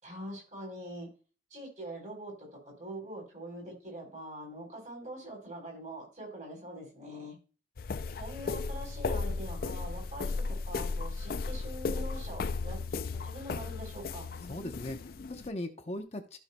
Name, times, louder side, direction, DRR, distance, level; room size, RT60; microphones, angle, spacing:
voice 1, 0.0-1.1 1.5-7.4 8.1-14.3, right 1 dB, 40° right, 0 dB, 4.1 m, -44 dB
sound 1, 7.8-15.5, left 4 dB, 50° left, 0.4 m, -35 dB
voice 2, 14.5-16.4, left 1 dB, 35° left, 4 dB, 0.8 m, -39 dB
15.0 x 5.6 x 2.2 m, 0.36 s
head